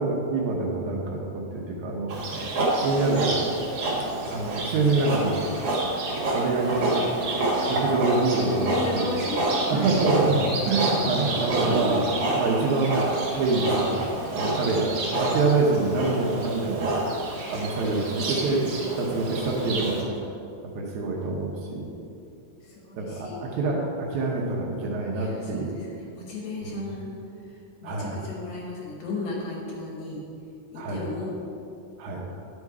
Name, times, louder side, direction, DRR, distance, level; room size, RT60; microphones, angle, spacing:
voice 1, 0.0-2.1 2.8-3.3 4.1-5.5 6.3-7.0 7.7-9.1 9.7-13.0 13.4-17.0 17.5-18.7 19.0-20.1 20.8-21.9 23.0-25.8 26.6-26.8 27.8-28.2 30.8-31.0 32.0-32.2, right 3 dB, 75° right, -2 dB, 1.8 m, -26 dB
Livestock farm animals working animals, 2.1-20.0, right 2 dB, 55° right, 1.7 m, -28 dB
voice 2, 8.7-10.1 18.7-19.3 22.6-23.6 25.1-27.1 27.4-30.2 30.7-31.4, left 2 dB, 65° left, -3 dB, 1.8 m, -35 dB
11.0 x 5.3 x 4.8 m, 2.7 s
omnidirectional pair, 4.6 m